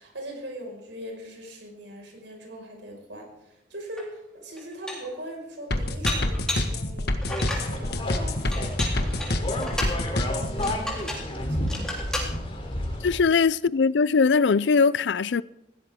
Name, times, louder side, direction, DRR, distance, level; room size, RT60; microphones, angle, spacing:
voice 1, 0.0-12.0, right 1 dB, 80° right, 5.5 m, -41 dB
Dishes pots and pans, 4.0-4.1 4.6-5.2 6.1-6.8 7.2-7.7 8.5-10.0 10.6-11.3 11.7-12.3, left 1 dB, 5° left, 3.7 m, -32 dB
sound 1, 5.7-10.7, left 1 dB, 60° left, 1.7 m, -27 dB
sound 2, 7.3-13.2, left 1 dB, 30° left, 3.4 m, -32 dB
voice 2, 13.0-15.4, left 5 dB, 75° left, 0.5 m, -21 dB
20.5 x 16.5 x 3.7 m
head